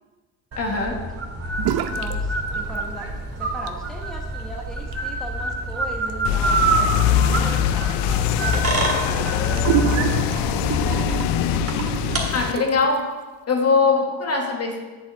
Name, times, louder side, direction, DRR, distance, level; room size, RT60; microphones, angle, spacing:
sound 1, 0.5-12.2, right 3 dB, 35° right, 1.9 m, -27 dB
voice 1, 0.6-1.0 12.3-13.1 13.5-14.8, left 4 dB, 35° left, 2 dB, 1.4 m, -21 dB
voice 2, 1.6-3.1 3.4-10.8 13.9-14.0, equal, ahead, 0 dB, 1.2 m, -39 dB
sound 2, 1.6-2.2 2.5-3.1 3.5-13.0, right 10 dB, 70° right, 0.7 m, -30 dB
sound 3, 6.2-12.5, left 9 dB, 75° left, 0.5 m, -22 dB
8.1 x 4.1 x 7.0 m, 1.3 s
supercardioid pair, 75°, 41 cm